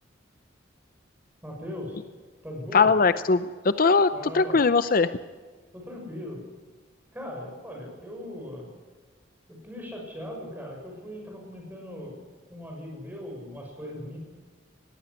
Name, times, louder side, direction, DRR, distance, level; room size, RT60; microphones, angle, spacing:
voice 1, 1.4-2.0 2.4-2.9 4.1-4.6 5.7-6.4 7.1-8.7 9.5-12.1 12.5-14.2, left 1 dB, 10° right, 0 dB, 6.8 m, -39 dB
voice 2, 2.7-4.1 4.3-5.1, left 4 dB, 45° left, 13 dB, 0.6 m, -20 dB
19.5 x 15.5 x 9.9 m, 1.5 s
head